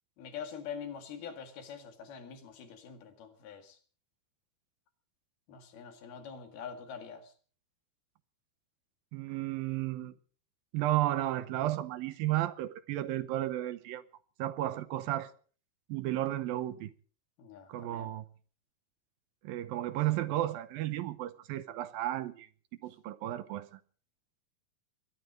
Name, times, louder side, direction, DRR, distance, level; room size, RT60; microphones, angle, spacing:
voice 1, 0.2-3.8 5.5-7.3 17.4-18.1, left 7 dB, 80° left, 4.0 m, -44 dB
voice 2, 9.1-10.1 10.7-14.0 14.4-15.3 15.9-16.9 17.7-18.2 19.4-22.5 22.8-23.8, right 14 dB, 75° right, 2.5 m, -33 dB
22.0 x 13.0 x 5.1 m
omnidirectional pair, 4.4 m